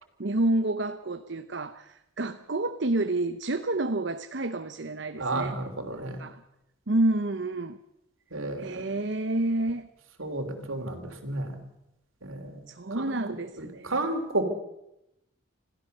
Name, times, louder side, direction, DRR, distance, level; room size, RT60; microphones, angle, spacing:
voice 1, 0.2-5.6 6.2-6.4 6.9-7.8 8.6-9.9 12.7-13.9, right 2 dB, 60° right, 9 dB, 0.8 m, -29 dB
voice 2, 5.2-6.2 8.3-8.9 10.2-11.6 12.2-12.7 12.9-13.2 13.6-14.5, right 2 dB, 90° right, 4 dB, 3.2 m, -32 dB
26.5 x 16.0 x 6.7 m, 0.85 s
head